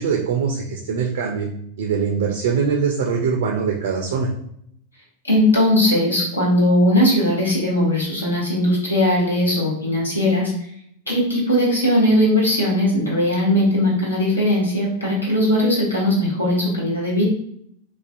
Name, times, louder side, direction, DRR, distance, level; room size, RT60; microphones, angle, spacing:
voice 1, 0.0-1.5 1.8-4.3, right 6 dB, 60° right, 0 dB, 0.3 m, -22 dB
voice 2, 5.2-10.5 11.1-17.2, left 1 dB, 80° left, -5 dB, 0.9 m, -19 dB
2.4 x 2.4 x 2.4 m, 0.70 s
figure-of-eight pair, 90°, 0 cm